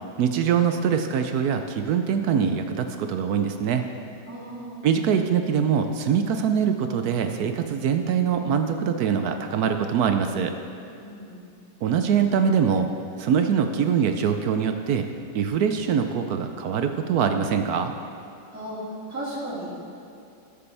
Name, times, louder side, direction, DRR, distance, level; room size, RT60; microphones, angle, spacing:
voice 1, 0.2-3.8 4.8-10.5 11.8-12.9 13.2-15.1 15.3-17.9, right 7 dB, 70° right, 6 dB, 1.0 m, -23 dB
voice 2, 4.3-4.9 11.0-11.6 18.5-19.9, right 1 dB, 10° right, -9 dB, 2.5 m, -36 dB
20.0 x 6.9 x 3.3 m, 2.5 s
omnidirectional pair, 1.9 m